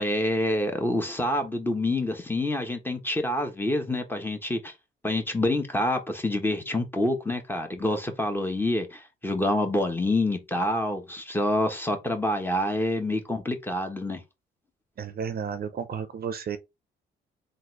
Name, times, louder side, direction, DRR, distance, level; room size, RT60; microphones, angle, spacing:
voice 1, 0.0-4.7 5.0-14.2, left 1 dB, 10° left, 1.2 m, -27 dB
voice 2, 15.0-16.6, right 7 dB, 50° right, 0.6 m, -32 dB
3.8 x 2.6 x 4.7 m
cardioid pair, 90°, 20 cm